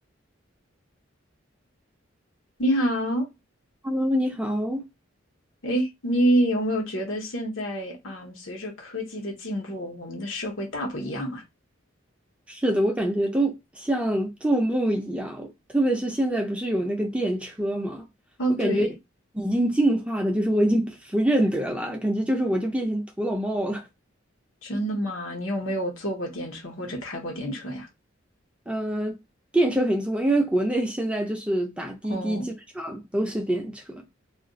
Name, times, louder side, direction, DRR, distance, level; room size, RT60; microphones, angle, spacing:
voice 1, 2.6-3.3 5.6-11.4 18.4-18.9 24.6-27.9 32.1-32.5, equal, 80° left, 1.0 m, -28 dB
voice 2, 3.8-4.8 12.5-15.5 15.7-18.0 18.6-18.9 19.3-23.8 28.7-29.2 29.5-32.5 32.7-34.0, right 1 dB, 5° right, 0.5 m, -25 dB
2.4 x 2.3 x 3.8 m
head